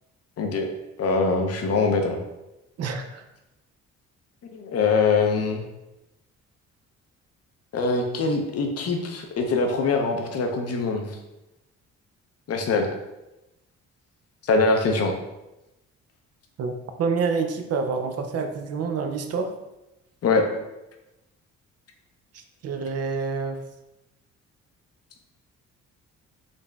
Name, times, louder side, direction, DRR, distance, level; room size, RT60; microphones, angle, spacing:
voice 1, 0.4-0.7 1.0-2.2 4.5-5.6 7.7-11.2 12.5-12.9 14.4-15.1 20.2-20.4, left 4 dB, 55° left, 3 dB, 0.6 m, -23 dB
voice 2, 2.8-3.2 16.6-16.7 17.0-19.5 22.6-23.6, right 5 dB, 55° right, 6 dB, 0.5 m, -27 dB
3.9 x 2.1 x 3.4 m, 0.96 s
cardioid pair, 90°, 30 cm